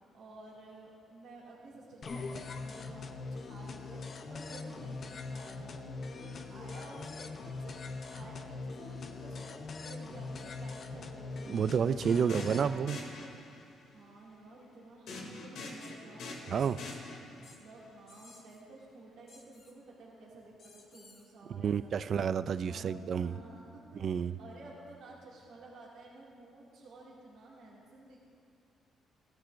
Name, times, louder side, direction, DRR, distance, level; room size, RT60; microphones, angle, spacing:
voice 1, 0.1-4.0 4.3-9.5 9.8-11.7 12.1-13.1 13.8-16.8 17.4-21.9 22.7-28.2, right 2 dB, 65° right, -5 dB, 2.3 m, -53 dB
sound 1, 2.0-12.7, left 3 dB, 35° left, 0.6 m, -42 dB
voice 2, 11.5-13.0 16.5-16.8 21.6-23.4 24.0-24.4, right 7 dB, 45° right, 14 dB, 0.3 m, -30 dB
sound 2, 12.1-13.8 15.1-17.5, left 2 dB, 85° left, 2.6 m, -45 dB
sound 3, 15.8-15.9 16.6-17.0 17.4-17.6 18.1-18.6 19.3-19.7 20.6-21.3, left 3 dB, 55° left, 2.3 m, -57 dB
17.0 x 13.5 x 2.6 m, 2.3 s
cardioid pair, 160°, 0 cm